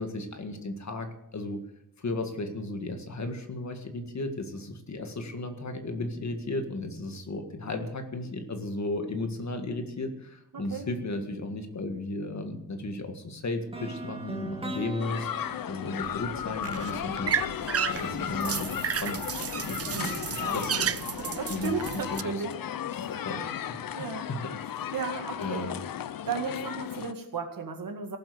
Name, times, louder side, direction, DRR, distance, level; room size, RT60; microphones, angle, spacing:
voice 1, 0.0-1.6 2.0-15.3 15.7-17.4 17.9-21.0 21.5-22.3 23.0-24.9 25.4-25.8, left 2 dB, 50° left, 6 dB, 1.9 m, -35 dB
voice 2, 10.5-10.8 19.9-20.7 21.2-22.5 22.9-23.1 24.0-24.3 24.9-25.7 26.3-28.2, right 5 dB, 65° right, 5 dB, 2.1 m, -35 dB
sound 1, 13.7-17.7, right 2 dB, 15° right, 1.8 m, -41 dB
sound 2, 15.0-27.1, left 10 dB, 65° left, 0.6 m, -35 dB
sound 3, 16.0-22.2, right 8 dB, 40° right, 0.5 m, -33 dB
17.5 x 7.8 x 6.8 m, 0.80 s
wide cardioid pair, 145°, 36 cm